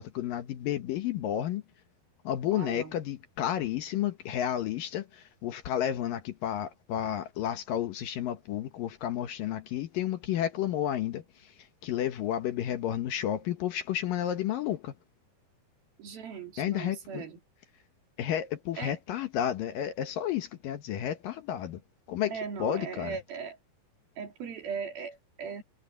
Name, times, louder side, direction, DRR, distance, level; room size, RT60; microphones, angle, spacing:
voice 1, 0.0-1.6 2.2-11.5 11.8-14.9 16.6-17.3 18.2-21.8 22.1-23.2, left 11 dB, 70° left, 2.6 m, -31 dB
voice 2, 2.5-2.9 16.0-17.4 18.8-18.9 22.3-23.6 24.2-25.6, right 6 dB, 70° right, 4.9 m, -38 dB
omnidirectional pair, 4.6 m